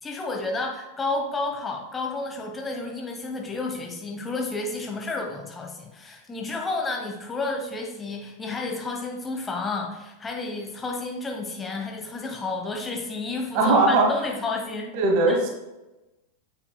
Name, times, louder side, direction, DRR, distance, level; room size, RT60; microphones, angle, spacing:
voice 1, 0.0-14.9 15.3-15.4, left 3 dB, 15° left, 1 dB, 1.1 m, -31 dB
voice 2, 13.5-14.1 14.9-15.5, right 2 dB, 45° right, 1 dB, 1.3 m, -19 dB
8.5 x 4.8 x 2.3 m, 1.0 s
figure-of-eight pair, 90°, 0 cm